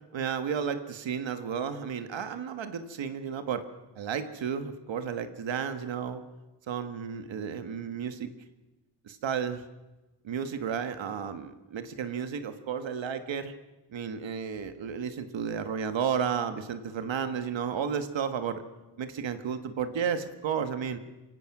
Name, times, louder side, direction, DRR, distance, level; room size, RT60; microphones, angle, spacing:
voice 1, 0.1-3.7 3.9-6.2 6.7-8.3 9.0-9.6 10.2-13.5 13.9-18.6 19.0-21.0, right 7 dB, 75° right, 9 dB, 1.5 m, -32 dB
28.0 x 16.5 x 6.0 m, 1.1 s
wide cardioid pair, 180°, 45 cm